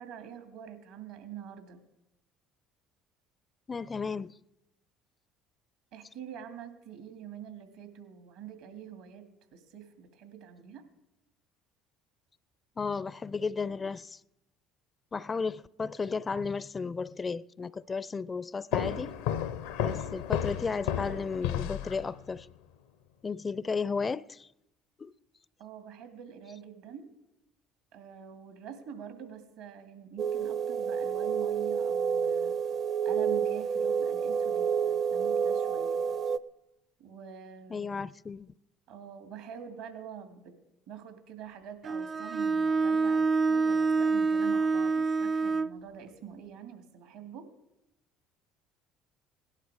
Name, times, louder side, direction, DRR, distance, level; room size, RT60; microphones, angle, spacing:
voice 1, 0.0-1.8 5.9-9.2 9.5-10.8 25.6-27.1 27.9-32.6 33.0-36.0 37.0-37.9 38.9-40.5 40.9-47.5, right 8 dB, 75° right, 2.3 m, -46 dB
voice 2, 3.7-4.3 12.8-14.2 15.1-19.1 19.8-22.5 23.2-24.5 25.0-25.1 37.7-38.5, left 5 dB, 30° left, 0.4 m, -34 dB
sound 1, 18.7-22.4, left 10 dB, 80° left, 0.7 m, -32 dB
sound 2, 30.2-36.4, right 7 dB, 55° right, 0.7 m, -29 dB
Bowed string instrument, 41.8-45.8, right 4 dB, 30° right, 0.4 m, -27 dB
17.5 x 11.5 x 5.0 m
hypercardioid pair, 65°, 0 cm